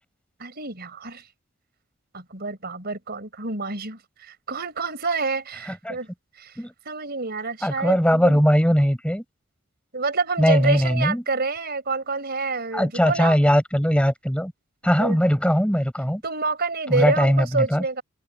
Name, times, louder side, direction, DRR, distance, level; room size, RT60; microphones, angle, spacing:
voice 1, 0.4-1.2 2.1-6.1 6.4-6.5 6.8-8.4 9.9-13.4 15.0-15.2 16.2-18.0, right 3 dB, 50° right, 4.7 m, -28 dB
voice 2, 7.6-9.2 10.4-11.2 12.7-14.5 14.8-16.2 16.9-17.8, equal, 5° left, 6.2 m, -20 dB
head